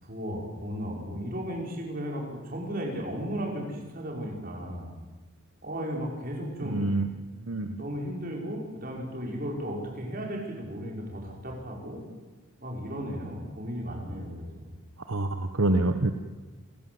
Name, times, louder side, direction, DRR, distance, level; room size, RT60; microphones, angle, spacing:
voice 1, 0.0-4.9 5.6-6.9 7.5-12.0 12.6-14.7, equal, 40° right, -1 dB, 5.6 m, -35 dB
voice 2, 6.6-7.1 7.5-7.7 15.1-16.1, right 2 dB, 75° right, 7 dB, 1.2 m, -26 dB
28.0 x 15.5 x 8.0 m, 1.3 s
head